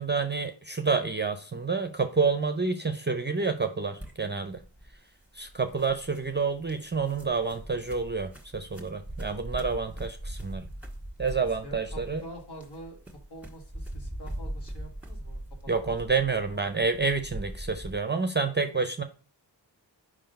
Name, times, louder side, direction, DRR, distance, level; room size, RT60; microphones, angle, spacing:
voice 1, 0.0-4.6 5.3-10.7 11.2-12.2 15.7-19.0, right 4 dB, 25° right, 7 dB, 0.5 m, -28 dB
sound 1, 4.0-18.0, right 1 dB, 5° right, 1.5 m, -41 dB
voice 2, 11.4-13.0 13.3-15.4 15.9-16.7, right 1 dB, 65° left, 1 dB, 1.8 m, -46 dB
5.0 x 3.7 x 5.2 m, 0.38 s
wide cardioid pair, 55°, 44 cm